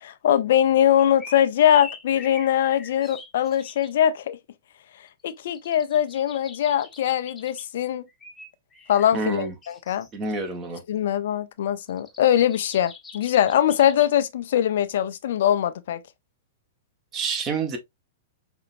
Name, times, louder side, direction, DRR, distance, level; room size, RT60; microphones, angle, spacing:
voice 1, 0.0-4.4 5.2-8.0 8.9-10.1 10.9-16.0, left 10 dB, 65° left, 0.6 m, -22 dB
sound 1, 1.0-4.0 5.1-7.7 8.1-10.1 11.8-14.1, left 4 dB, 15° left, 1.1 m, -44 dB
voice 2, 9.1-9.5 10.1-10.8 17.1-17.8, right 4 dB, 30° right, 1.4 m, -28 dB
5.2 x 2.9 x 2.6 m
hypercardioid pair, 115°, 0 cm